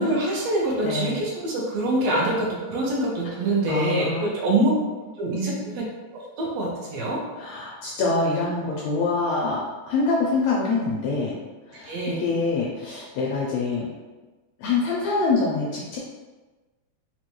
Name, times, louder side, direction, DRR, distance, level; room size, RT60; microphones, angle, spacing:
voice 1, 0.0-4.7 5.2-5.8 6.1-7.2 11.7-12.3, right 1 dB, 75° right, -3 dB, 1.6 m, -25 dB
voice 2, 0.8-1.2 3.7-4.2 5.3-5.7 7.4-9.6 9.9-11.4 11.7-13.9 14.6-16.0, left 3 dB, 80° left, -3 dB, 1.5 m, -25 dB
5.2 x 2.2 x 2.9 m, 1.2 s
omnidirectional pair, 3.6 m